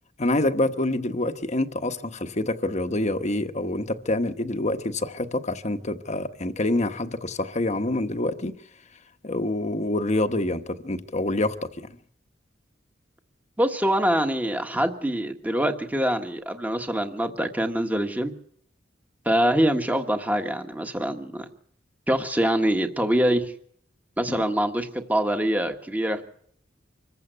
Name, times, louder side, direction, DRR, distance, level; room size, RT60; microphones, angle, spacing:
voice 1, 0.2-8.5 9.2-11.9, left 2 dB, 40° left, 1.2 m, -26 dB
voice 2, 13.6-18.3 19.2-21.5 22.1-23.5 24.2-26.2, equal, 10° right, 1.5 m, -24 dB
25.5 x 15.5 x 8.0 m
head